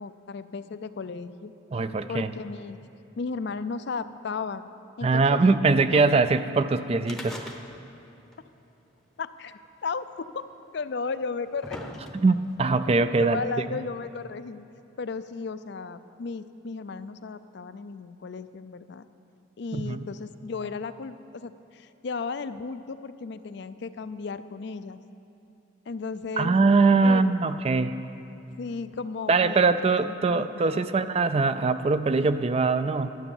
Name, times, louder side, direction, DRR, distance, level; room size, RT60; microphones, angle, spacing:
voice 1, 0.0-1.5 2.1-2.8 3.2-4.6 5.0-6.1 9.2-10.3 10.7-11.8 13.2-14.7 15.0-19.0 19.6-25.0 25.9-26.6 27.0-27.3 28.6-30.9, left 4 dB, 55° left, 12 dB, 0.4 m, -35 dB
voice 2, 1.7-2.3 5.0-7.5 12.1-13.4 19.7-20.1 26.4-28.0 29.3-33.1, right 3 dB, 30° right, 12 dB, 0.3 m, -22 dB
sound 1, 7.0-8.0 8.3-8.4 9.4-9.5 10.4-10.5 11.2-12.5 13.4-13.5, left 1 dB, ahead, 0.7 m, -40 dB
12.0 x 9.7 x 7.2 m, 2.9 s
head